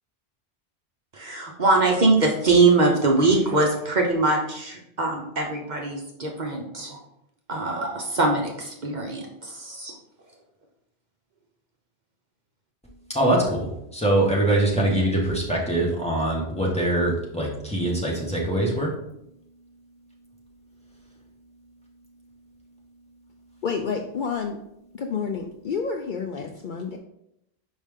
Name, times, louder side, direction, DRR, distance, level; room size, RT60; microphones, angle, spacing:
voice 1, 1.1-7.0 7.5-9.9, right 3 dB, 45° right, 1 dB, 0.9 m, -22 dB
voice 2, 13.1-18.9, right 1 dB, 5° left, -4 dB, 1.4 m, -23 dB
voice 3, 23.6-24.6 24.9-27.0, left 5 dB, 60° left, 3 dB, 0.6 m, -29 dB
5.3 x 5.0 x 3.6 m, 0.80 s
omnidirectional pair, 1.1 m